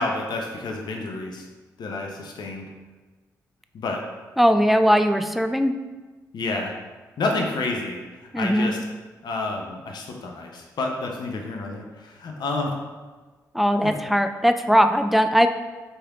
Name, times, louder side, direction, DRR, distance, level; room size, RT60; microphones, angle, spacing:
voice 1, 0.0-1.5 1.8-2.7 3.7-4.0 6.3-6.7 7.2-8.8 9.2-12.8 13.8-13.9, left 2 dB, 65° left, 2 dB, 0.6 m, -29 dB
voice 2, 4.4-5.7 8.3-8.7 13.5-15.5, equal, ahead, 8 dB, 0.3 m, -19 dB
4.4 x 3.3 x 2.3 m, 1.3 s
supercardioid pair, 45°, 8 cm